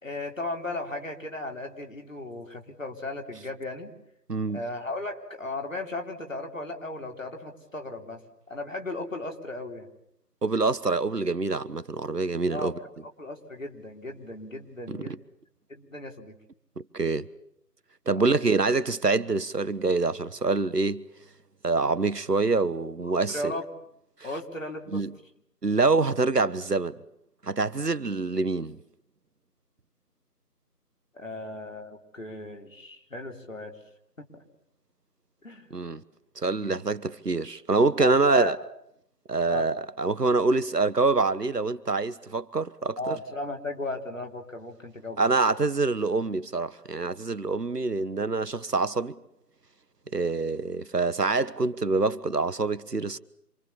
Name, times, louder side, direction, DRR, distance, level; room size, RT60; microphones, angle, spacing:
voice 1, 0.0-3.9 4.5-8.2 8.5-9.9 12.5-12.7 13.0-15.2 15.7-16.3 18.1-18.4 23.0-23.7 24.2-25.0 31.1-33.7 35.4-35.7 36.6-36.9 38.0-38.6 39.5-39.7 43.0-45.3, left 2 dB, 55° left, 3.9 m, -36 dB
voice 2, 4.3-4.6 10.4-12.7 14.9-15.0 16.9-17.3 18.1-21.0 21.6-23.4 24.9-25.1 25.6-27.0 27.4-28.8 35.7-36.0 36.4-38.6 39.3-43.1 45.2-49.2 50.1-53.2, right 3 dB, 75° right, 1.3 m, -25 dB
27.0 x 25.0 x 7.2 m
figure-of-eight pair, 170°, 48 cm